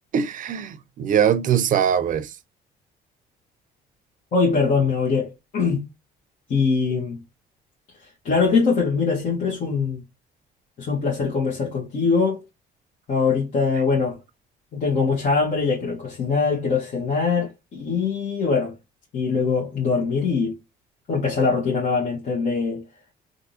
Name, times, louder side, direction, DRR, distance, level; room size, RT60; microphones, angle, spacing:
voice 1, 0.1-2.3, right 8 dB, 50° right, 0.6 m, -22 dB
voice 2, 4.3-5.8 6.5-7.2 8.2-10.0 10.8-12.4 13.1-14.2 14.7-18.7 19.1-20.6 21.1-22.8, left 4 dB, 50° left, 1.5 m, -22 dB
3.5 x 2.6 x 2.8 m
cardioid pair, 110°, 17 cm